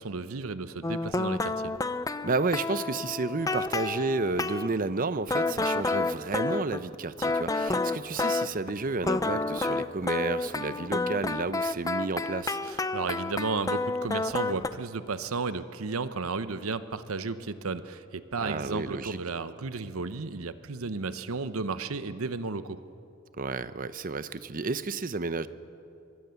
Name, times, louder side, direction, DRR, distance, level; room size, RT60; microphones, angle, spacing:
voice 1, 0.0-1.7 12.7-22.8, right 4 dB, 80° right, 12 dB, 0.8 m, -33 dB
sound 1, 0.8-4.7 5.3-8.7 9.0-14.7, left 3 dB, 15° left, 0.6 m, -30 dB
voice 2, 2.2-12.6 18.4-19.2 23.4-25.5, right 3 dB, 40° right, 14 dB, 0.7 m, -31 dB
24.0 x 21.5 x 7.0 m, 2.7 s
head